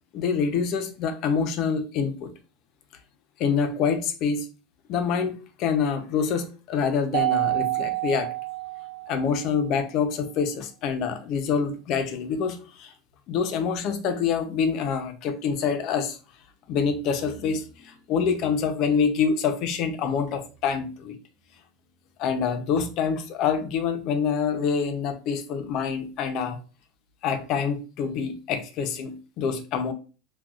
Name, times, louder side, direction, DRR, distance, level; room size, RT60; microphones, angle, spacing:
voice 1, 0.1-2.3 3.4-4.5 4.9-8.3 9.1-12.9 13.3-16.2 16.7-21.2 22.2-26.6 27.2-29.9, left 6 dB, 50° left, 0.5 m, -26 dB
Mallet percussion, 7.1-9.6, right 20 dB, 80° right, 0.7 m, -28 dB
3.7 x 2.3 x 2.3 m
supercardioid pair, 120°, 0 cm